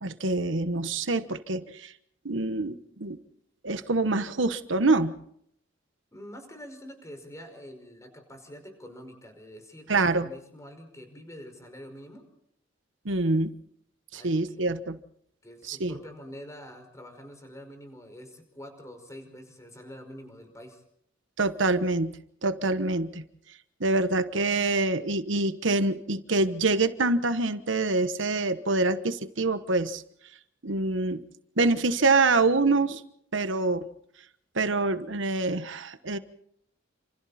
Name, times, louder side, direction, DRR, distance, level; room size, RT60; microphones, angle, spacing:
voice 1, 0.0-1.9 2.2-3.2 3.6-5.1 9.9-10.3 13.0-13.5 14.1-15.0 15.7-15.9 21.4-22.1 22.4-23.2 23.8-30.0 30.6-31.2 31.6-33.0 33.3-33.8 34.5-36.2, right 3 dB, 70° right, 11 dB, 1.3 m, -25 dB
voice 2, 6.1-12.2 14.1-14.7 15.4-20.8, equal, 15° left, 6 dB, 5.3 m, -46 dB
29.0 x 27.0 x 4.3 m, 0.69 s
head